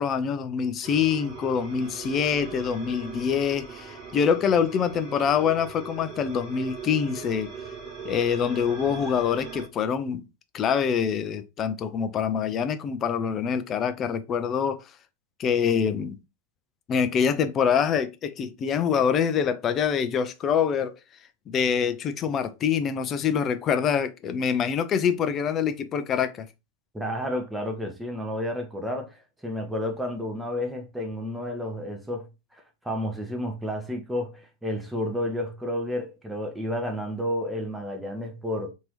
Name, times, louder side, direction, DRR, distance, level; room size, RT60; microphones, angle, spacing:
voice 1, 0.0-7.5 8.0-10.2 10.5-14.8 15.4-16.2 16.9-20.9 21.5-26.5, left 7 dB, 30° left, 0.4 m, -25 dB
sound 1, 0.8-9.7, right 5 dB, 25° right, 1.2 m, -40 dB
voice 2, 26.9-32.3 32.8-38.7, left 1 dB, 5° right, 0.7 m, -31 dB
2.9 x 2.6 x 3.1 m
figure-of-eight pair, 90°, 0 cm